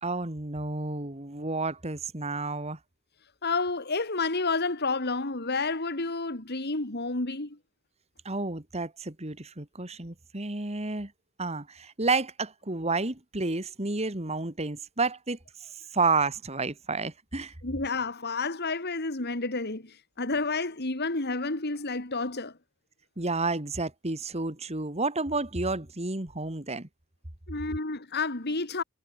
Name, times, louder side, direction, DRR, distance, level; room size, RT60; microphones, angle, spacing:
voice 1, 0.0-2.8 8.2-11.1 11.4-17.5 23.2-26.9, right 3 dB, 30° right, 2.1 m, -31 dB
voice 2, 3.4-7.6 17.6-22.5 27.5-28.8, left 3 dB, 45° left, 2.3 m, -30 dB
head